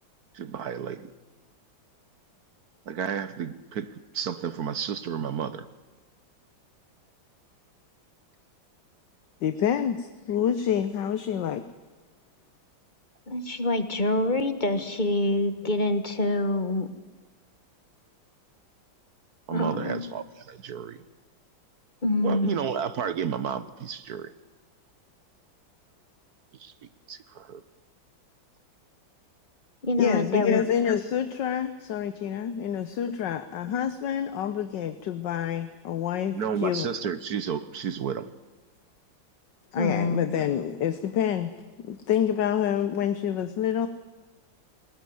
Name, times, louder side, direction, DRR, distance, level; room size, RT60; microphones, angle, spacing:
voice 1, 0.3-1.1 2.9-5.7 19.5-21.0 22.2-24.3 26.6-26.7 27.1-27.6 36.3-38.3, right 7 dB, 60° right, 14 dB, 1.3 m, -32 dB
voice 2, 9.4-11.6 30.0-36.9 39.7-41.5 41.8-43.9, left 9 dB, 70° left, 11 dB, 1.6 m, -27 dB
voice 3, 13.3-16.9 19.5-20.1 22.0-22.6 29.8-30.7 39.7-40.4, left 1 dB, 25° left, 10 dB, 1.3 m, -26 dB
20.5 x 19.5 x 9.4 m, 1.2 s
omnidirectional pair, 2.1 m